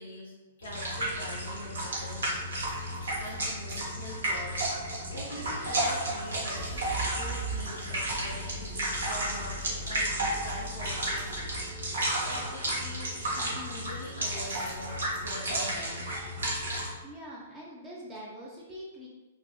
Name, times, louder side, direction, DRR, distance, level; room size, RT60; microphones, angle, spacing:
voice 1, 0.0-2.3 3.2-11.5 12.2-16.1, left 1 dB, 65° left, -4 dB, 0.4 m, -44 dB
sound 1, 0.6-16.9, right 1 dB, 70° right, 0.8 m, -32 dB
sound 2, 1.8-1.9 2.3-3.8 4.1-11.9 13.4-14.1 14.3-15.3, right 3 dB, 40° right, 1.1 m, -43 dB
voice 2, 17.0-19.1, equal, 15° right, -6 dB, 0.5 m, -44 dB
2.7 x 2.4 x 2.2 m, 1.1 s
figure-of-eight pair, 110°, 0 cm